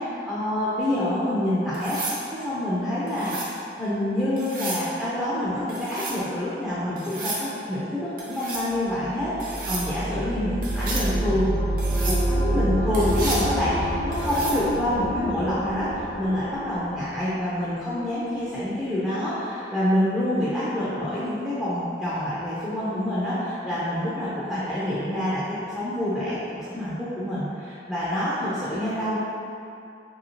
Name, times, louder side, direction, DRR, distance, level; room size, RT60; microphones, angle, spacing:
voice 1, 0.0-3.3 3.8-11.6 12.0-29.2, left 1 dB, ahead, -11 dB, 0.4 m, -27 dB
sound 1, 1.7-2.2 3.1-3.5 4.4-4.9 5.7-6.2 7.0-7.4 8.2-8.7 9.4-9.9 10.6-11.1 11.8-12.2 12.9-13.5 14.1-14.6 16.5-16.8, right 3 dB, 50° right, 0.6 m, -33 dB
sound 2, 8.8-17.7, right 1 dB, 80° left, 1.0 m, -28 dB
2.9 x 2.8 x 2.7 m, 2.6 s
head